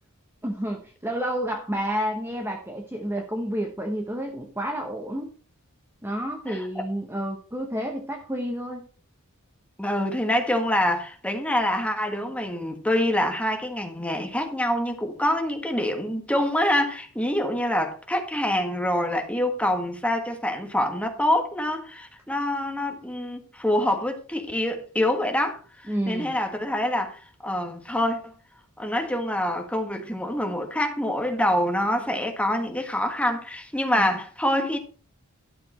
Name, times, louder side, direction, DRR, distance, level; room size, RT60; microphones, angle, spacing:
voice 1, 0.4-5.3 6.0-8.9 25.9-26.4 34.0-34.2, equal, 10° right, 1.0 m, -30 dB
voice 2, 6.5-6.8 9.8-28.3 28.8-34.8, left 1 dB, 5° left, 1.6 m, -26 dB
12.0 x 6.9 x 4.3 m
head